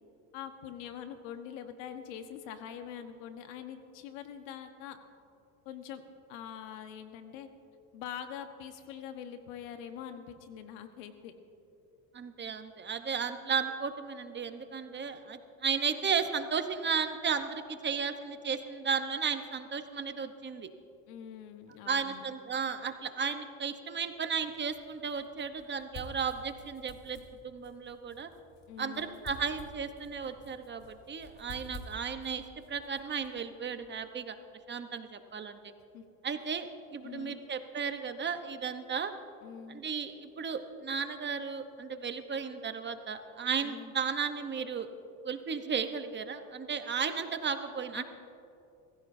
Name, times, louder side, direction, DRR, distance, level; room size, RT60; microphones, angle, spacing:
voice 1, 0.3-5.0 5.6-6.0 6.3-7.5 7.9-11.3 21.1-22.3 28.7-29.2 35.9-36.0 37.0-37.4 39.4-39.8 43.6-43.9 47.9-48.0, left 9 dB, 80° left, 7 dB, 1.3 m, -44 dB
voice 2, 12.1-20.7 21.9-28.3 28.8-32.4 32.7-34.4 34.7-35.6 36.2-39.1 39.7-44.9 45.2-48.0, right 6 dB, 30° right, 8 dB, 0.9 m, -34 dB
sound 1, 24.2-34.1, left 2 dB, 55° left, 3.6 m, -51 dB
23.0 x 15.5 x 2.7 m, 2.7 s
supercardioid pair, 100°, 39 cm